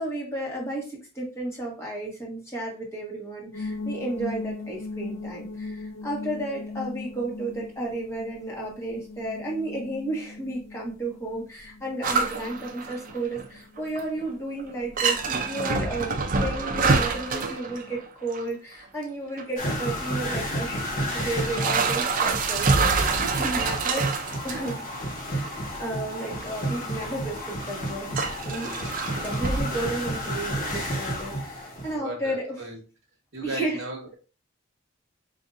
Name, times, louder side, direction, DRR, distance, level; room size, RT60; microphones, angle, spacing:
voice 1, 0.0-24.1 24.4-24.9 25.3-28.1 28.4-28.9 29.2-32.7 33.4-33.8, right 1 dB, 15° left, 1.3 m, -33 dB
sound 1, 3.5-16.6, left 3 dB, 65° left, 0.7 m, -40 dB
sound 2, 12.0-13.5 13.8-14.2 14.6-14.7 15.0-18.4 19.4-19.5 20.3-20.4 21.0-24.8 25.2-25.5 26.3-26.4 27.6-27.7 28.2-29.6, right 4 dB, 40° right, 0.4 m, -26 dB
sound 3, 19.6-31.9, equal, 45° left, 1.2 m, -31 dB
voice 2, 31.9-32.8 33.3-34.2, right 2 dB, 60° right, 1.1 m, -35 dB
5.2 x 2.7 x 2.5 m
head